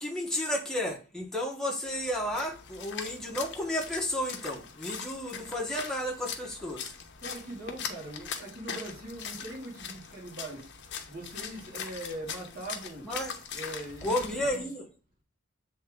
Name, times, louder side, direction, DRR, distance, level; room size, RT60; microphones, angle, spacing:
voice 1, 0.0-6.9 13.0-13.6 14.0-14.9, left 1 dB, 5° left, 1.3 m, -32 dB
Splash splatter, 1.9-14.6, left 7 dB, 55° left, 0.9 m, -41 dB
voice 2, 7.2-10.7 11.1-13.1 13.5-14.7, right 1 dB, 45° right, 2.5 m, -41 dB
7.6 x 3.6 x 3.7 m
head